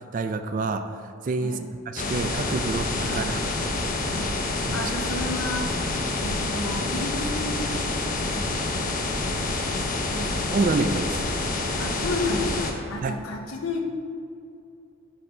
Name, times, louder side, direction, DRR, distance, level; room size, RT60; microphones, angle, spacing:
voice 1, 0.1-0.8 1.2-1.6 1.9-3.4 10.5-11.2 13.0-13.1, right 3 dB, 40° right, 8 dB, 0.3 m, -27 dB
sound 1, 2.0-12.7, left 2 dB, 40° left, 0.6 m, -27 dB
voice 2, 3.0-3.3 4.1-4.4 4.7-5.8 6.2-8.6 9.4-10.6 11.8-13.9, left 2 dB, 90° left, 2 dB, 0.9 m, -33 dB
sound 2, 5.6-9.2, left 1 dB, 20° left, 0.9 m, -44 dB
6.5 x 5.6 x 4.3 m, 2.4 s
head